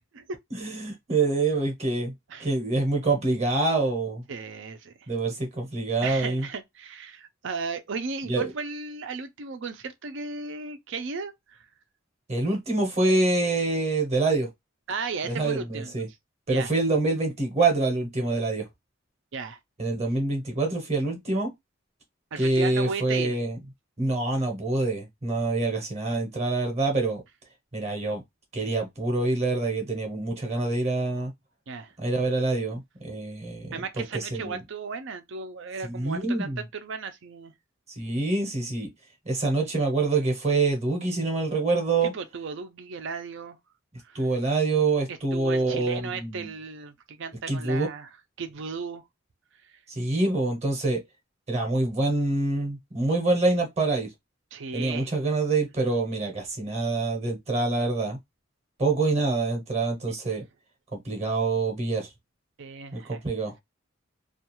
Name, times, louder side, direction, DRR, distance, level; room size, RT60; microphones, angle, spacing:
voice 1, 0.5-2.1 2.4-4.2 5.1-6.5 8.3-8.5 12.3-14.5 15.3-16.1 16.5-18.7 19.8-21.5 22.4-23.6 24.0-27.2 27.7-28.2 28.5-31.3 32.0-34.6 35.8-36.6 38.0-38.9 39.3-42.1 44.1-46.5 47.5-47.9 49.9-51.0 51.5-54.1 54.7-58.2 58.8-60.4 60.9-62.1 62.9-63.5, right 3 dB, 30° right, 0.8 m, -26 dB
voice 2, 4.3-4.9 6.0-11.7 14.9-16.1 16.5-16.7 19.3-19.6 22.3-23.4 31.7-31.9 33.7-37.5 42.0-43.6 44.0-44.3 45.1-48.1 48.4-49.0 54.5-55.1 60.1-60.2 62.6-63.2, right 4 dB, 60° right, 0.5 m, -35 dB
2.4 x 2.3 x 2.9 m
head